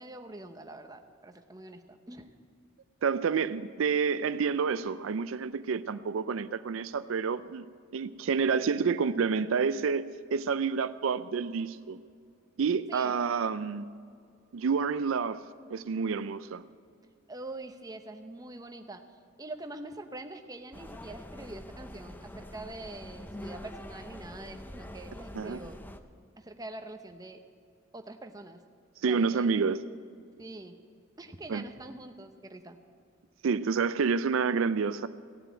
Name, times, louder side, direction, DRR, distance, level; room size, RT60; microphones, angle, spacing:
voice 1, 0.0-2.3 12.9-13.1 17.3-19.0 19.4-25.8 26.4-27.4 27.9-28.6 29.1-29.5 30.4-30.8 31.2-32.8, right 2 dB, 20° right, 6 dB, 0.8 m, -44 dB
voice 2, 3.0-7.7 7.9-12.0 12.6-13.9 14.5-15.4 15.7-16.6 25.3-25.6 29.0-29.8 31.5-31.6 33.4-35.1, right 5 dB, 80° right, 14 dB, 0.4 m, -29 dB
sound 1, 20.7-26.0, left 1 dB, 10° left, 0.5 m, -45 dB
15.5 x 7.6 x 9.5 m, 2.2 s
head